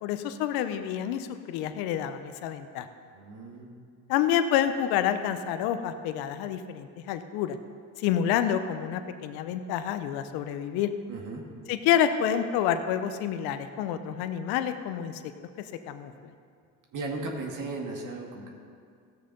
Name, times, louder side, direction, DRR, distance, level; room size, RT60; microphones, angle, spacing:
voice 1, 0.0-2.9 4.1-7.6 8.0-10.9 11.7-15.3 15.9-16.1, left 9 dB, 75° left, 10 dB, 0.8 m, -28 dB
voice 2, 3.2-3.7 11.1-11.4 16.9-18.5, right 3 dB, 55° right, 1 dB, 2.1 m, -36 dB
15.5 x 6.7 x 5.3 m, 2.2 s
supercardioid pair, 80°, 38 cm